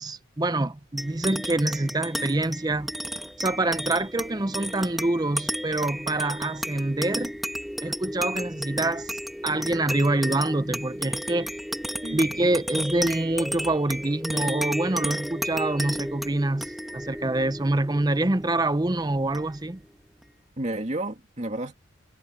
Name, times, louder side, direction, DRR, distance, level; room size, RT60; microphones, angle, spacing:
voice 1, 0.0-2.9 3.4-7.3 7.8-11.5 12.1-19.8, right 2 dB, 20° right, 0.6 m, -26 dB
sound 1, 1.0-19.8, equal, ahead, 1.9 m, -33 dB
voice 2, 12.0-12.4 20.6-21.7, right 1 dB, 35° right, 2.4 m, -31 dB
head